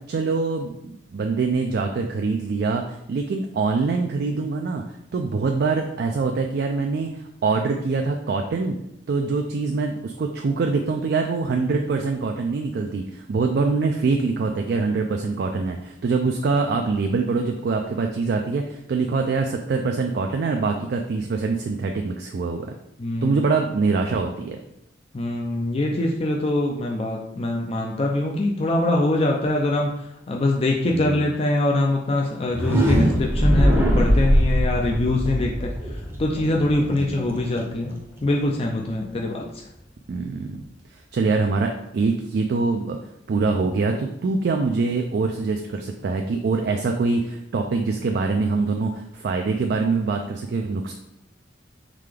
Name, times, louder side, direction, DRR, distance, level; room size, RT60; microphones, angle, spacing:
voice 1, 0.1-4.8 5.1-8.8 9.1-22.7 23.2-24.6 30.9-31.2 36.9-37.4 40.1-40.6 40.9-43.0 43.3-50.9, right 4 dB, 60° right, 4 dB, 0.3 m, -24 dB
voice 2, 23.0-23.5 25.1-29.9 30.3-35.7 36.2-37.9 38.2-39.4, left 2 dB, 35° left, 0 dB, 0.4 m, -23 dB
sound 1, 32.5-38.3, equal, 15° right, 0.6 m, -21 dB
3.7 x 3.3 x 3.3 m, 0.80 s
head